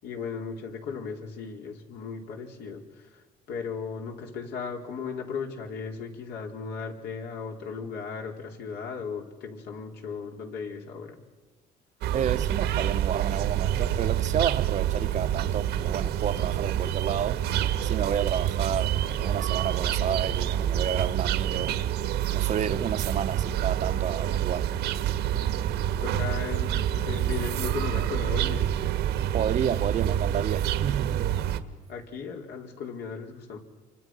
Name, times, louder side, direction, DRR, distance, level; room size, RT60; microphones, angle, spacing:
voice 1, 0.0-2.8 3.1-11.2 26.0-28.7 31.9-33.6, left 5 dB, 75° left, 4.4 m, -36 dB
sound 1, 12.0-31.6, right 10 dB, 80° right, 1.5 m, -27 dB
voice 2, 12.1-17.4 17.8-21.8 22.3-24.7 29.3-31.3, right 8 dB, 45° right, 0.9 m, -30 dB
29.0 x 24.5 x 6.2 m
cardioid pair, 110°, 17 cm